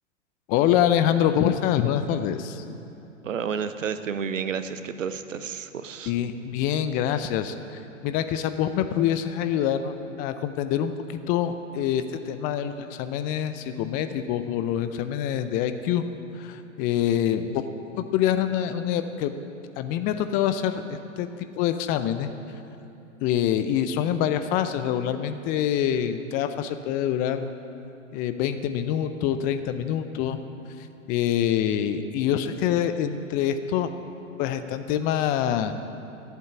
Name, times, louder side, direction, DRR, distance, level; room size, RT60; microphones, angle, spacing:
voice 1, 0.5-2.6 6.1-10.9 11.3-16.1 16.3-17.6 17.9-19.3 19.8-21.3 21.6-22.3 23.2-27.5 28.1-30.4 30.8-33.9 34.4-35.7, left 10 dB, 25° left, 10 dB, 0.4 m, -25 dB
voice 2, 3.2-6.1, right 7 dB, 75° right, 11 dB, 1.0 m, -31 dB
14.5 x 8.2 x 8.5 m, 2.8 s
figure-of-eight pair, 105°, 39 cm